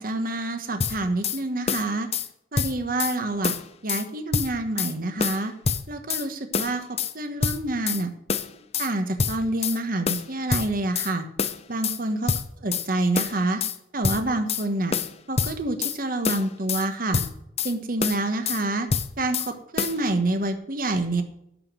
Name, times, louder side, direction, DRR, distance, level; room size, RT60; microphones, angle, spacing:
voice 1, 0.0-2.1 2.5-3.5 3.8-5.5 5.9-6.8 7.1-8.1 8.8-11.3 11.7-12.3 12.6-13.6 13.9-14.9 15.3-17.2 17.6-18.9 19.2-21.2, right 2 dB, 55° right, 7 dB, 1.3 m, -27 dB
sound 1, 0.8-1.4 1.7-2.3 2.6-3.2 3.4-4.1 4.3-4.9 5.2-6.3 6.5-7.1 7.4-8.0 8.3-8.9 9.2-9.8 10.1-11.1 11.4-12.0 12.3-12.9 13.2-13.8 14.0-14.7 14.9-16.0 16.2-16.9 17.1-17.7 18.0-18.6 18.9-19.5 19.8-20.0, left 5 dB, 35° left, 0.6 m, -26 dB
11.5 x 5.2 x 7.5 m, 0.76 s
head